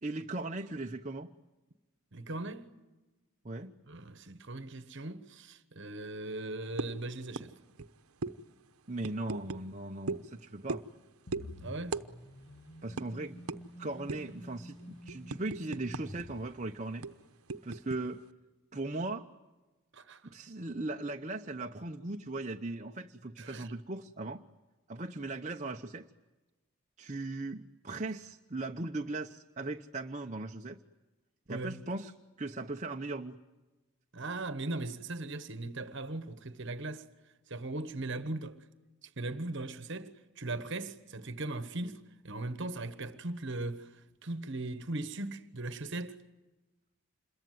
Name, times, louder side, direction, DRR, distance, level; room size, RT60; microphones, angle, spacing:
voice 1, 0.0-1.3 3.4-3.7 8.9-10.8 12.8-13.4 13.8-17.1 17.6-18.2 18.7-19.3 20.3-24.4 24.9-26.0 27.0-30.8 31.5-32.1 32.4-33.4, right 2 dB, 30° right, 0.8 m, -38 dB
voice 2, 2.1-2.8 3.9-7.5 11.6-12.0 19.9-20.2 23.4-23.7 31.5-31.8 34.1-37.0 37.5-38.6 39.0-46.2, right 2 dB, 55° right, 1.3 m, -39 dB
sound 1, 6.8-7.0 7.4-7.5 7.7-7.9 8.2-8.3 9.0-9.6 10.1-10.3 10.7-11.0 11.3-11.5 11.9-12.1 12.3-12.5 13.0-13.1 13.5-13.6 14.1-14.4 14.8-16.2 16.5-16.6 17.0-18.0, right 3 dB, 80° right, 0.9 m, -37 dB
sound 2, 11.3-17.2, equal, 55° left, 2.2 m, -49 dB
27.5 x 22.0 x 9.4 m
head